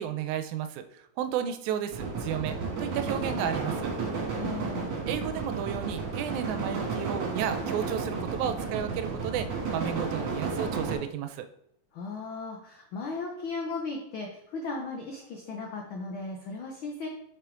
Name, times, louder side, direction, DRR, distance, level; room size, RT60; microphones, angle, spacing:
voice 1, 0.0-3.9 5.1-11.5, right 9 dB, 85° right, 9 dB, 2.0 m, -33 dB
sound 1, 1.9-11.0, right 4 dB, 65° right, 2.4 m, -32 dB
voice 2, 4.3-4.9 11.9-17.1, left 3 dB, 80° left, 1 dB, 1.1 m, -36 dB
5.7 x 5.5 x 3.7 m, 0.74 s
omnidirectional pair, 3.3 m